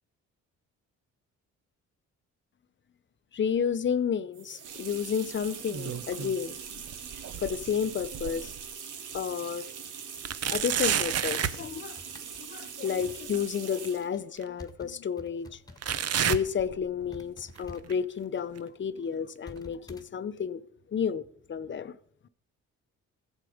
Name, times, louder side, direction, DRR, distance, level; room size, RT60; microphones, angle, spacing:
voice 1, 3.3-6.8 7.4-8.5 9.1-9.7 10.5-12.0 12.4-15.6 16.3-20.6 20.9-21.2 21.5-21.9, left 7 dB, 40° left, 0.8 m, -31 dB
sound 1, 4.3-14.1, right 7 dB, 90° right, 1.8 m, -42 dB
sound 2, 5.5-6.4 6.8-8.7 9.2-9.3 10.2-11.6 13.3-13.4 14.4-14.5 15.8-17.2 17.6-17.9 18.6-18.7 19.6-19.7, right 9 dB, 55° right, 0.8 m, -31 dB
sound 3, 11.7-16.2 16.5-16.7 17.1-20.1, left 2 dB, 10° left, 1.6 m, -51 dB
15.0 x 8.3 x 5.1 m
cardioid pair, 90°, 30 cm